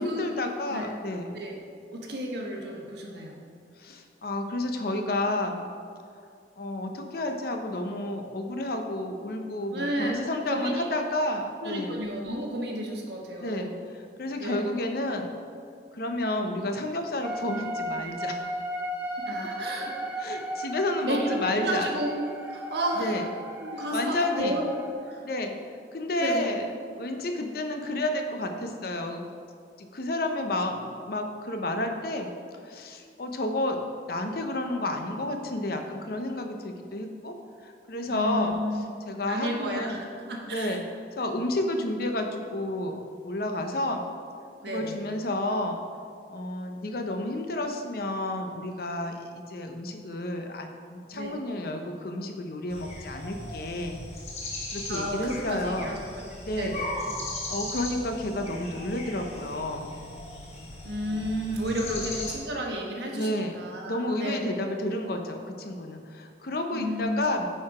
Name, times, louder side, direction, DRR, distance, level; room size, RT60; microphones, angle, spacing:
voice 1, 0.0-1.4 3.8-5.7 6.6-11.9 13.4-15.3 15.9-18.4 20.2-21.9 23.0-23.3 23.9-24.6 25.2-25.5 25.9-26.7 27.0-29.3 29.8-32.3 32.6-33.8 34.1-37.3 37.6-40.0 40.5-40.8 41.2-44.0 44.6-45.8 46.3-54.0 54.7-56.0 56.4-56.8 57.5-60.0 61.9-62.0 63.1-63.6 63.9-67.5, left 1 dB, 50° left, 5 dB, 0.7 m, -31 dB
voice 2, 1.9-3.4 9.7-10.2 10.5-10.9 11.6-13.8 14.4-14.7 19.2-19.9 21.0-22.1 22.4-23.2 23.6-24.7 25.1-25.2 26.2-26.5 38.1-38.9 39.3-40.8 44.6-45.0 51.1-51.4 54.9-56.3 56.6-56.9 60.8-64.6 66.7-67.3, right 1 dB, 60° right, 0 dB, 1.3 m, -32 dB
sound 1, 17.2-24.9, right 1 dB, 10° right, 0.9 m, -36 dB
sound 2, 52.7-62.4, left 1 dB, 35° left, 1.3 m, -38 dB
9.0 x 4.7 x 4.8 m, 2.3 s
head